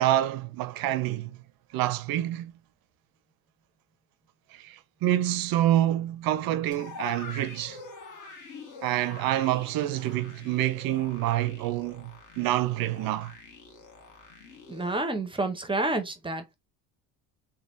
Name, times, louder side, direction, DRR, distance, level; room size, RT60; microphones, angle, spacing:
voice 1, 0.0-1.4 1.7-2.5 4.5-7.8 8.8-13.3, right 13 dB, 55° right, 0.5 m, -27 dB
sound 1, 6.7-15.0, left 4 dB, 40° left, 1.3 m, -45 dB
voice 2, 14.7-16.5, right 2 dB, 10° right, 0.6 m, -29 dB
3.2 x 2.3 x 2.6 m
supercardioid pair, 100°, 45 cm